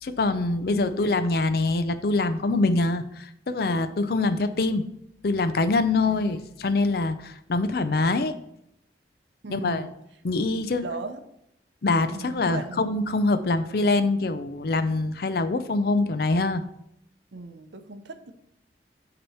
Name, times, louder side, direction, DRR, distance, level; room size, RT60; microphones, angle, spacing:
voice 1, 0.0-4.9 5.2-8.3 9.5-9.9 10.2-10.8 11.8-16.6, left 3 dB, 55° left, 11 dB, 0.5 m, -24 dB
voice 2, 0.7-1.1 6.0-6.5 9.4-10.0 10.8-11.2 12.1-13.0 17.3-18.3, right 3 dB, 80° right, 8 dB, 0.7 m, -38 dB
8.5 x 3.0 x 5.5 m, 0.78 s
head